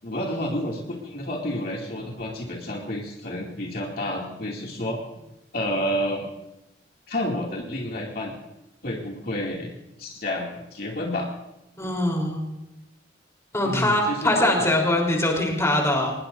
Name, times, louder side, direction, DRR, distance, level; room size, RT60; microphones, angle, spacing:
voice 1, 0.0-5.0 5.5-6.3 7.1-8.3 8.8-9.7 10.0-11.3 13.6-14.7, left 1 dB, 50° left, -2 dB, 2.4 m, -30 dB
voice 2, 11.8-12.4 13.5-16.1, left 1 dB, 15° left, 0 dB, 3.6 m, -23 dB
23.0 x 20.0 x 2.6 m, 0.92 s
head